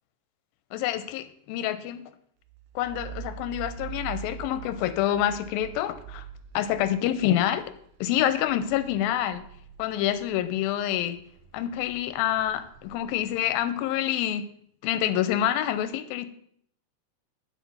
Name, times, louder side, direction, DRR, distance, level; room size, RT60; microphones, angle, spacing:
voice 1, 0.7-2.0 2.8-6.3 6.5-7.7 8.0-9.4 9.8-11.2 11.5-14.5 14.8-16.3, left 11 dB, 85° left, 11 dB, 2.4 m, -27 dB
sound 1, 2.5-10.7 11.1-13.7, right 8 dB, 75° right, 2.3 m, -44 dB
8.9 x 7.3 x 5.5 m, 0.66 s
omnidirectional pair, 4.2 m